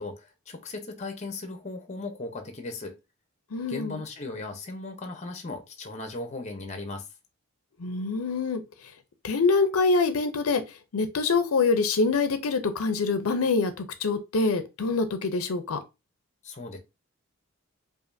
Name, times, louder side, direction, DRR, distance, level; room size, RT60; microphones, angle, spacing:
voice 1, 0.0-2.9 3.7-7.1 16.4-16.8, left 3 dB, 30° left, 0.7 m, -37 dB
voice 2, 3.5-4.0 7.8-8.6 9.2-10.6 10.9-15.8, left 4 dB, 75° left, 0.5 m, -25 dB
4.9 x 2.6 x 2.6 m
head